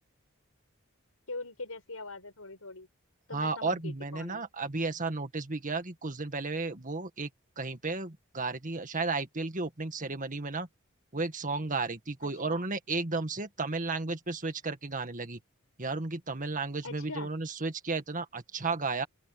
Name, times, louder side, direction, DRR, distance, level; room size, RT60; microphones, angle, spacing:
voice 1, 1.3-2.9 3.3-4.4 12.2-12.7 16.8-17.3, left 3 dB, 85° left, 6.2 m, -42 dB
voice 2, 3.3-7.3 7.6-10.7 11.1-15.4 15.8-19.1, right 3 dB, 40° right, 1.9 m, -33 dB
open air
head